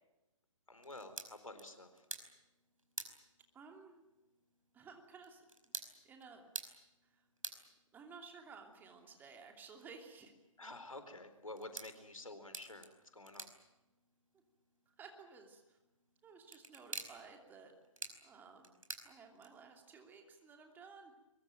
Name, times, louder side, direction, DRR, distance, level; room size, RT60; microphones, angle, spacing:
voice 1, 0.7-2.1 10.6-13.5, left 2 dB, 80° left, 9 dB, 4.2 m, -50 dB
sound 1, 0.8-19.8, right 2 dB, 75° right, 5.0 m, -52 dB
voice 2, 3.5-4.0 4.7-5.7 6.0-6.5 7.0-7.3 7.9-10.3 15.0-15.8 16.2-17.7 18.2-18.7 19.0-21.1, right 5 dB, 10° right, 4 dB, 2.8 m, -55 dB
23.0 x 22.5 x 9.1 m, 1.0 s
figure-of-eight pair, 135°, 17 cm